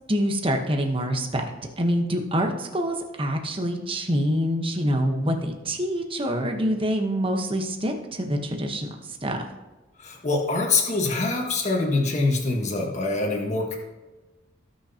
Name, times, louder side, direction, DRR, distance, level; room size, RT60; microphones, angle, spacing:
voice 1, 0.1-1.4 1.8-9.4, equal, 30° right, 4 dB, 1.1 m, -26 dB
voice 2, 10.0-13.8, left 3 dB, 40° left, -1 dB, 1.5 m, -24 dB
18.5 x 6.1 x 2.9 m, 1.1 s
head